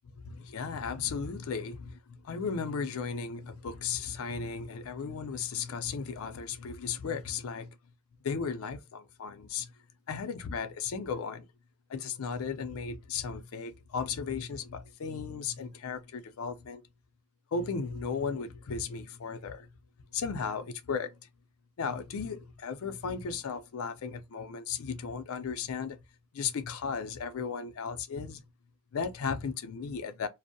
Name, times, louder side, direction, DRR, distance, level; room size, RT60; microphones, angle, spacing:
voice 1, 0.2-7.7 8.2-9.7 10.1-11.5 11.9-16.8 17.5-19.7 20.1-21.2 21.8-26.0 26.3-28.4 28.9-30.3, left 5 dB, 80° left, 0.4 m, -35 dB
2.5 x 2.0 x 2.6 m
head